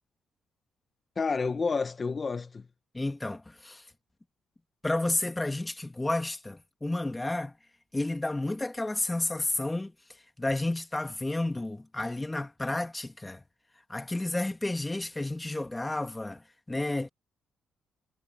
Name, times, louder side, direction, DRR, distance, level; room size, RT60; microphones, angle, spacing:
voice 1, 1.1-2.6 12.0-12.1, left 4 dB, 35° left, 1.6 m, -30 dB
voice 2, 2.9-3.8 4.8-7.6 7.9-9.9 10.4-13.4 13.9-17.1, left 2 dB, 15° left, 2.4 m, -31 dB
cardioid pair, 90°, 0 cm